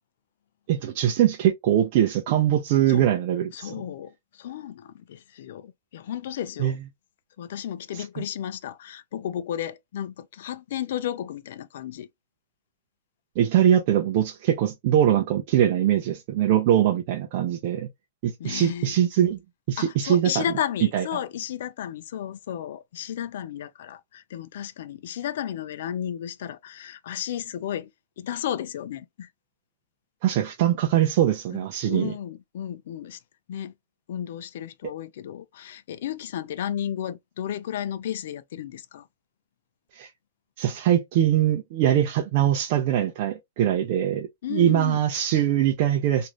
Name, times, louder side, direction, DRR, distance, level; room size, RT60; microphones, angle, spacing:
voice 1, 0.7-3.8 6.6-6.8 7.9-8.2 13.4-17.9 18.2-19.4 19.7-20.4 20.9-21.1 30.2-32.1 34.8-34.9 39.9-40.1 40.6-46.3, right 11 dB, 45° right, 0.5 m, -22 dB
voice 2, 3.5-6.8 7.4-12.1 18.4-19.0 19.8-27.9 28.2-29.3 31.5-33.2 33.5-33.7 34.1-39.1 44.4-45.0, left 10 dB, 65° left, 0.4 m, -33 dB
3.1 x 2.5 x 2.3 m
hypercardioid pair, 155°, 0 cm